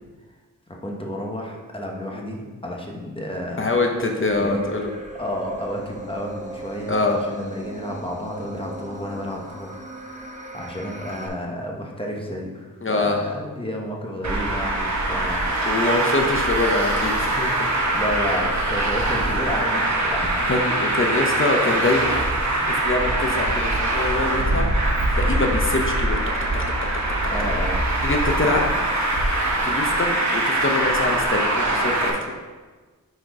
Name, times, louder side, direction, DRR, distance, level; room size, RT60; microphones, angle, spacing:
voice 1, 0.7-3.8 4.4-4.6 5.1-15.9 17.9-20.6 22.6-22.9 27.3-27.8 28.7-28.8, equal, 15° left, -1 dB, 1.1 m, -31 dB
voice 2, 3.6-4.9 6.9-7.2 12.8-13.2 15.7-17.7 20.5-22.1 22.7-24.7 25.1-26.9 28.0-28.7 29.6-32.3, left 2 dB, 35° left, 2 dB, 0.8 m, -24 dB
sound 1, 4.3-11.3, right 2 dB, 20° right, 0.8 m, -38 dB
Traffic noise roadway noise, 14.2-32.1, right 1 dB, 55° right, 1.2 m, -23 dB
6.4 x 4.4 x 4.7 m, 1.4 s
wide cardioid pair, 110°, 35 cm